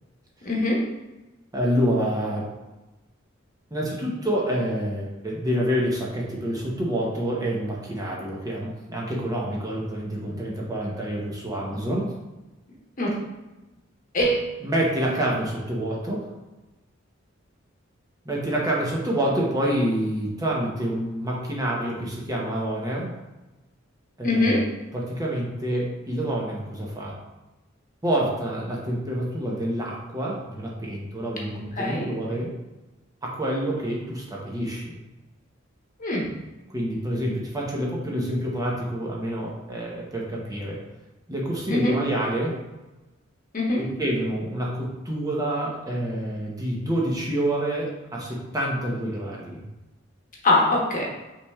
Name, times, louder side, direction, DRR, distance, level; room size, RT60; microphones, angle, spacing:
voice 1, 0.4-0.8 13.0-13.1 14.1-14.4 24.2-24.6 31.8-32.1 36.0-36.2 41.7-41.9 43.5-43.8 50.4-51.0, left 2 dB, 45° left, -3 dB, 1.1 m, -22 dB
voice 2, 1.5-2.5 3.7-12.1 14.6-16.2 18.2-23.1 24.2-24.6 24.9-27.2 28.0-32.5 33.2-35.0 36.7-40.8 41.3-42.6 43.8-49.6, right 1 dB, 20° right, -3 dB, 0.8 m, -27 dB
5.6 x 3.3 x 2.3 m, 1.1 s
head